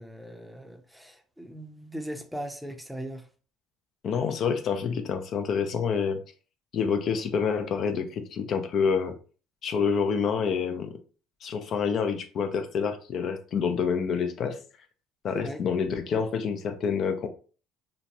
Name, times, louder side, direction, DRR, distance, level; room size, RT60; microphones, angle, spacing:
voice 1, 0.0-3.2 15.3-15.6, right 1 dB, ahead, 0.5 m, -39 dB
voice 2, 4.0-6.2 6.7-9.2 9.6-11.0 11.4-14.6 15.2-17.3, left 6 dB, 55° left, 0.4 m, -27 dB
2.9 x 2.1 x 2.6 m
supercardioid pair, 80°, 0 cm